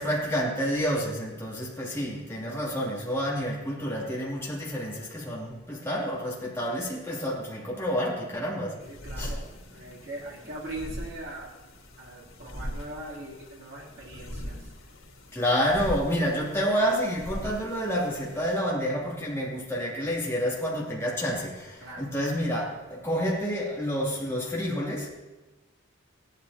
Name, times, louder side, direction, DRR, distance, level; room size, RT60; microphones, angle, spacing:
voice 1, 0.0-8.8 9.1-9.4 15.3-25.1, equal, 15° left, -5 dB, 2.7 m, -29 dB
voice 2, 8.7-9.5 9.7-11.5 12.0-14.7 21.8-22.1, right 1 dB, 60° right, -6 dB, 3.1 m, -41 dB
sound 1, 8.8-18.6, equal, 90° left, 3.1 m, -41 dB
16.5 x 12.0 x 2.9 m, 1.1 s
head